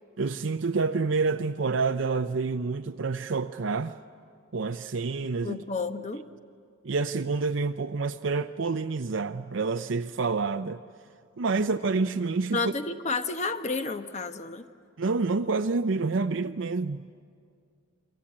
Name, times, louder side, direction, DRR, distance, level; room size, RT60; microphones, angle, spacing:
voice 1, 0.2-4.0 4.5-5.6 6.8-10.8 11.4-12.6 15.0-17.0, right 4 dB, 65° right, 0.6 m, -28 dB
voice 2, 5.4-6.2 12.5-14.7, left 3 dB, 35° left, 1.1 m, -31 dB
28.5 x 24.0 x 8.7 m
head